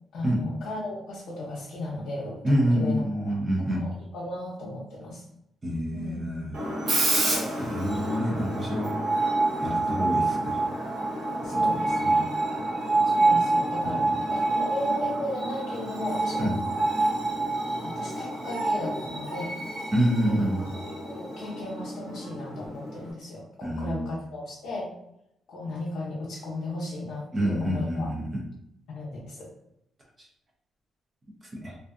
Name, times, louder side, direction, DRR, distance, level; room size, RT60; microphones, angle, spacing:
voice 1, 0.1-3.4 3.7-5.2 5.9-6.2 11.4-12.3 13.0-16.5 17.8-19.5 20.2-20.5 20.8-24.9 25.5-28.1 28.9-29.5, left 1 dB, 70° left, -6 dB, 0.6 m, -35 dB
voice 2, 2.4-3.8 5.6-6.5 7.6-8.9 9.6-10.6 11.5-12.1 13.8-14.2 16.4-16.5 19.9-20.7 23.6-24.1 27.3-28.4 30.2-30.3 31.6-31.8, equal, 20° right, -2 dB, 0.5 m, -27 dB
Screech, 6.5-23.1, right 2 dB, 55° right, 0.7 m, -27 dB
2.5 x 2.3 x 2.4 m, 0.80 s
cardioid pair, 175°, 0 cm